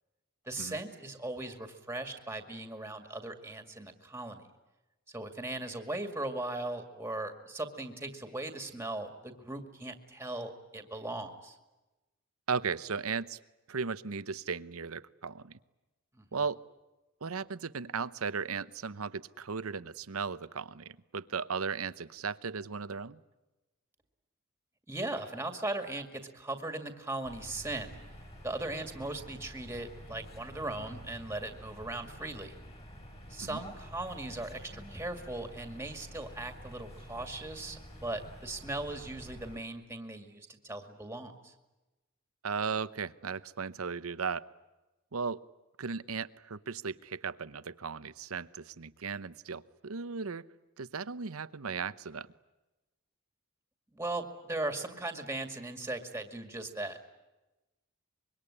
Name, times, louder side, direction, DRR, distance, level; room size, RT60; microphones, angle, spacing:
voice 1, 0.4-4.4 5.1-11.6 16.1-16.4 24.9-27.9 28.4-32.5 33.3-41.5 53.9-57.0, right 2 dB, 10° right, 6 dB, 2.2 m, -38 dB
voice 2, 12.5-13.4 13.7-15.6 16.3-16.6 17.2-23.2 33.4-33.6 42.4-44.4 45.1-45.4 45.8-50.4 50.8-52.3, right 5 dB, 80° right, 15 dB, 0.8 m, -36 dB
sound 1, 27.2-39.6, equal, 30° left, 4.9 m, -49 dB
25.0 x 23.0 x 9.9 m, 1.1 s
head